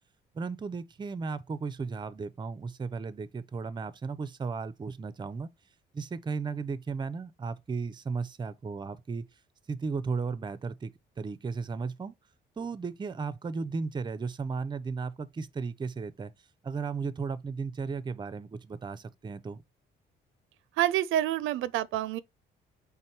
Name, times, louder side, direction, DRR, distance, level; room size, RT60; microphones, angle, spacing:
voice 1, 0.3-5.5 5.9-9.3 9.7-10.9 11.2-12.1 12.6-16.3 16.6-19.6, right 4 dB, 25° right, 0.4 m, -35 dB
voice 2, 20.8-22.2, right 13 dB, 85° right, 0.4 m, -27 dB
4.4 x 3.4 x 3.2 m
cardioid pair, 90°, 20 cm